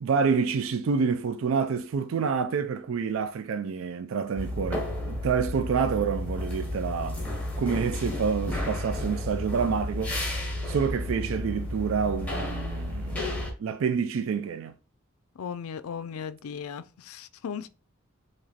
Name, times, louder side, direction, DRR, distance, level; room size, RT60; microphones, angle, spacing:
voice 1, 0.0-7.2 7.6-10.2 10.7-14.7, right 6 dB, 65° right, 0.3 m, -28 dB
sound 1, 4.4-13.5, left 1 dB, 5° left, 1.0 m, -32 dB
voice 2, 15.4-17.7, left 7 dB, 90° left, 0.4 m, -37 dB
4.9 x 3.0 x 2.8 m
head